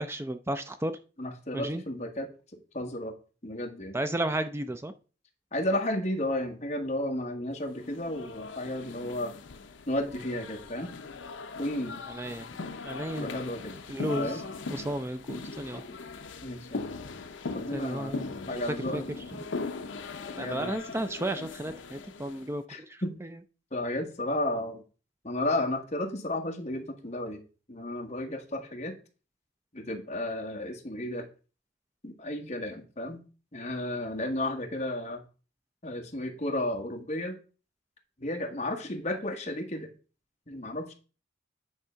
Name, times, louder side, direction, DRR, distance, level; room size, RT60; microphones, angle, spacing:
voice 1, 0.0-1.0 1.5-1.8 3.9-4.9 12.1-12.6 12.8-13.3 13.9-14.4 14.7-15.8 17.7-18.6 18.9-19.0 19.3-19.4 20.4-23.4, right 1 dB, 15° right, 10 dB, 0.4 m, -33 dB
voice 2, 1.2-2.3 2.7-3.1 3.4-4.0 5.5-9.3 9.9-10.9 11.6-12.0 13.2-13.8 14.2-14.4 15.9-16.0 16.4-16.9 17.5-18.2 18.5-19.0 20.4-20.7 22.7-23.1 23.7-24.8 25.2-27.4 27.7-29.0 29.7-31.3 32.0-33.2 33.5-35.2 35.8-37.4 38.2-39.9 40.5-40.9, left 1 dB, 35° left, 3 dB, 1.4 m, -33 dB
sound 1, 7.8-22.5, left 4 dB, 70° left, 0.7 m, -39 dB
9.5 x 3.7 x 5.6 m, 0.36 s
head